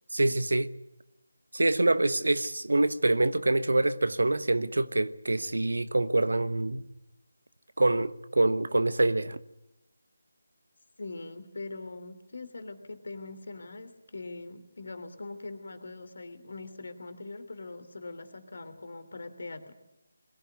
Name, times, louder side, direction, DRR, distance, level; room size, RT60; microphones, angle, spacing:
voice 1, 0.1-0.7 1.5-6.8 7.8-9.4, right 2 dB, 70° right, 1.2 m, -25 dB
voice 2, 11.0-19.7, left 3 dB, 55° left, 3.1 m, -42 dB
22.0 x 16.5 x 9.5 m
figure-of-eight pair, 155°, 0 cm